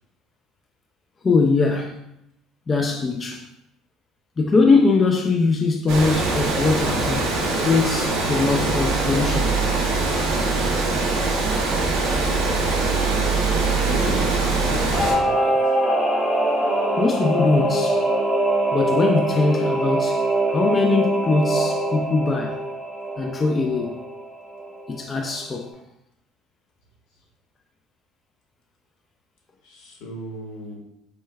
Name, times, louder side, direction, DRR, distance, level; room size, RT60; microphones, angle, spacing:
voice 1, 1.2-2.0 2.7-3.5 4.4-7.3 7.6-9.6 17.0-18.0 18.7-20.2 20.5-22.6 23.2-24.0 24.9-25.7, left 3 dB, 25° left, 0.3 m, -21 dB
Water, 5.9-15.1, right 3 dB, 75° right, 1.1 m, -22 dB
voice 2, 13.8-15.7 29.6-30.8, left 1 dB, 75° left, 1.1 m, -34 dB
Singing / Musical instrument, 14.9-25.0 25.3-25.4, right 1 dB, 5° left, 0.8 m, -23 dB
4.3 x 3.1 x 2.3 m
cardioid pair, 130°, 0 cm